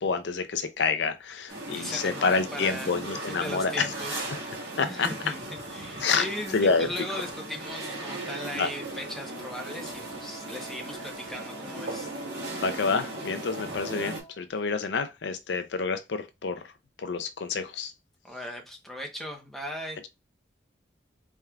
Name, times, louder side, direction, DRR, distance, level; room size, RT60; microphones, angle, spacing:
voice 1, 0.0-3.9 4.8-5.1 6.0-6.3 6.5-6.9 8.6-8.7 12.6-16.7 17.0-17.9, left 4 dB, 70° left, 0.5 m, -28 dB
sound 1, 1.5-14.2, right 2 dB, 60° right, 1.6 m, -37 dB
voice 2, 1.7-4.2 4.5-12.1 18.2-20.0, equal, ahead, 0.9 m, -38 dB
Wind instrument woodwind instrument, 9.2-14.4, right 3 dB, 85° right, 1.6 m, -50 dB
4.3 x 3.6 x 2.3 m
head